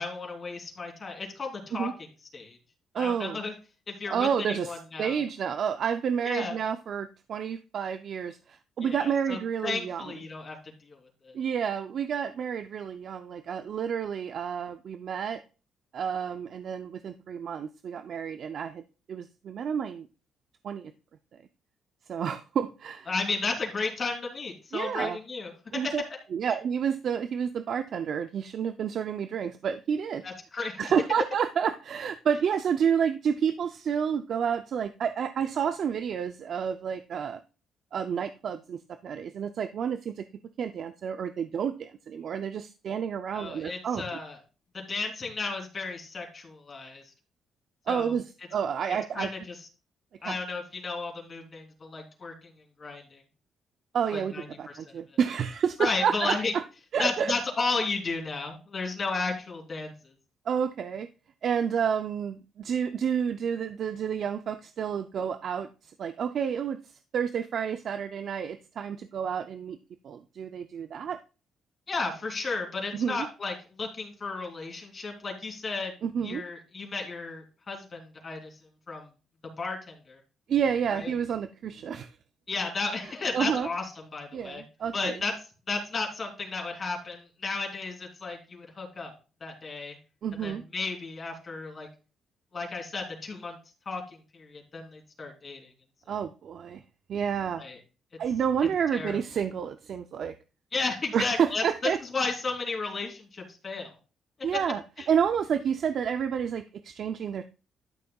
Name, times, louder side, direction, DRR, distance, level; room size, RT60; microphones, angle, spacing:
voice 1, 0.0-1.9 2.3-2.6 3.0-3.5 3.9-5.2 6.2-6.6 8.8-11.3 23.1-25.5 25.8-25.9 30.2-30.8 43.3-44.4 44.7-47.1 47.9-48.2 48.9-49.7 50.2-52.5 52.8-53.2 54.1-55.2 55.8-56.5 57.0-60.1 71.9-76.0 76.2-78.6 78.9-79.1 79.4-80.2 80.9-81.1 82.5-84.6 84.9-85.3 85.7-89.1 89.4-90.0 90.4-91.9 92.5-93.6 93.8-95.7 97.6-97.8 98.1-98.2 98.9-99.2 100.7-104.0 105.0-105.1, left 3 dB, 40° left, 0 dB, 3.3 m, -34 dB
voice 2, 2.9-3.4 4.1-10.0 11.3-15.4 15.9-18.8 19.1-20.1 20.6-20.9 22.1-23.1 24.7-25.2 25.7-26.0 26.3-30.2 30.8-37.4 37.9-40.3 40.6-44.0 47.9-49.3 50.2-50.4 53.9-56.6 56.9-57.3 60.5-61.1 61.4-66.8 67.1-69.8 70.0-71.2 72.9-73.3 76.0-76.4 80.5-82.1 83.3-83.7 84.3-85.2 90.2-90.6 96.1-96.8 97.1-97.7 98.2-100.3 101.1-102.0 104.4-104.8 105.1-107.4, right 7 dB, 60° right, 9 dB, 0.4 m, -29 dB
12.0 x 6.7 x 2.3 m, 0.34 s
cardioid pair, 90°, 0 cm